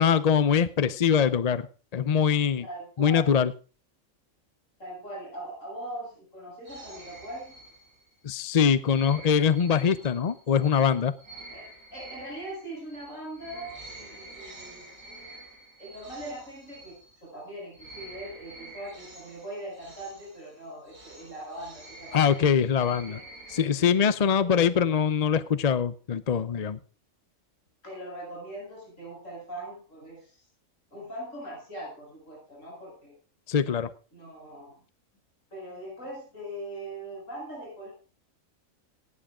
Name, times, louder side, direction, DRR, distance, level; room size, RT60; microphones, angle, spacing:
voice 1, 0.0-1.7 1.9-2.7 3.0-3.5 8.2-11.1 22.1-23.2 23.5-26.8 33.5-33.9, left 7 dB, 40° left, 14 dB, 0.6 m, -23 dB
voice 2, 2.6-3.3 4.8-7.5 11.5-11.6 11.9-14.9 15.8-22.4 23.0-23.2 24.4-24.6 27.8-30.3 30.9-33.1 34.1-34.8 35.5-37.9, right 1 dB, 70° left, 0 dB, 8.3 m, -41 dB
sound 1, 6.6-8.2 8.8-17.4 17.7-23.6, right 2 dB, 85° right, 6.1 m, -48 dB
18.5 x 7.7 x 4.9 m, 0.36 s
omnidirectional pair, 1.4 m